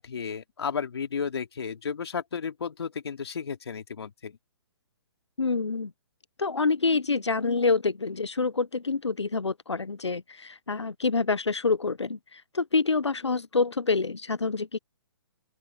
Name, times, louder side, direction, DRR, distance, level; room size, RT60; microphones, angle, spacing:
voice 1, 0.0-4.4, left 6 dB, 70° left, 3.1 m, -33 dB
voice 2, 5.4-5.9 6.4-14.8, left 4 dB, 85° left, 1.2 m, -27 dB
open air
figure-of-eight pair, 130°, 14 cm